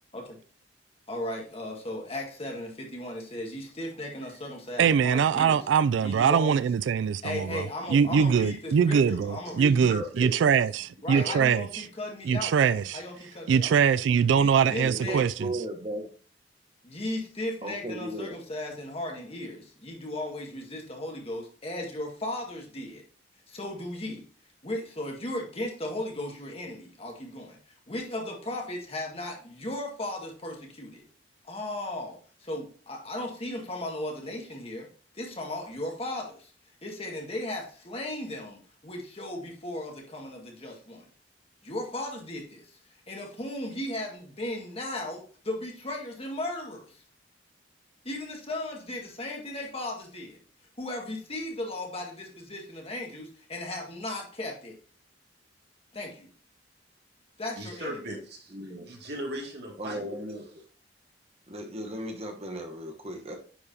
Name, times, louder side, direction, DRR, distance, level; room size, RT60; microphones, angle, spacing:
voice 1, 1.1-5.6 6.0-6.7 7.2-9.8 11.0-13.7 14.3-15.2 16.8-23.0 23.5-24.2 24.6-31.0 31.4-34.9 35.1-36.5 36.8-41.1 41.6-42.8 43.1-47.0 48.0-50.4 50.8-54.8 55.9-56.3 57.4-58.0, left 1 dB, 35° left, 2.0 m, -36 dB
voice 2, 4.8-11.8 12.2-13.0 13.5-15.5, right 7 dB, 80° right, 0.3 m, -23 dB
voice 3, 9.4-10.5 11.1-11.4 57.5-58.5 58.9-60.0, equal, 65° right, 2.3 m, -37 dB
voice 4, 14.8-16.1 17.6-18.4 58.5-58.9 59.8-60.7 61.5-63.4, right 1 dB, 35° right, 1.2 m, -36 dB
9.8 x 4.8 x 2.8 m
head